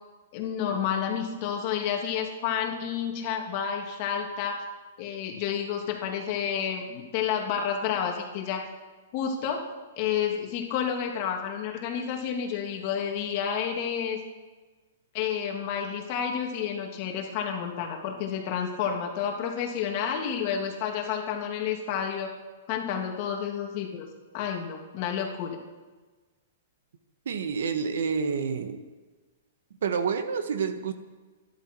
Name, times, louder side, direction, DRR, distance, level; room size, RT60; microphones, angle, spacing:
voice 1, 0.3-4.6 5.0-8.6 9.1-9.6 10.0-14.2 15.1-22.3 22.7-24.1 24.3-25.6, left 8 dB, 40° left, 2 dB, 2.7 m, -30 dB
voice 2, 27.2-28.8 29.8-30.9, right 6 dB, 75° right, 9 dB, 1.6 m, -28 dB
25.5 x 11.5 x 4.7 m, 1.3 s
hypercardioid pair, 160°, 0 cm